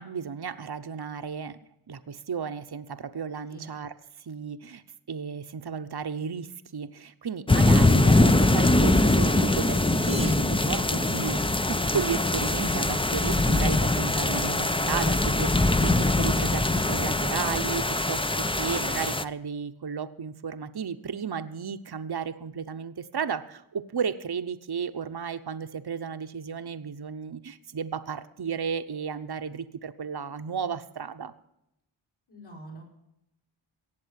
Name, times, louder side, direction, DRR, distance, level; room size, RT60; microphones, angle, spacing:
voice 1, 0.0-1.6 1.9-3.9 4.2-31.3, right 6 dB, 55° right, 9 dB, 0.9 m, -34 dB
sound 1, 7.5-19.2, left 2 dB, 10° left, 0.6 m, -22 dB
sound 2, 9.8-11.6, right 1 dB, 10° right, 1.0 m, -41 dB
voice 2, 32.3-32.8, right 2 dB, 55° left, -3 dB, 6.2 m, -44 dB
17.5 x 7.6 x 7.5 m, 0.82 s
wide cardioid pair, 45°, 48 cm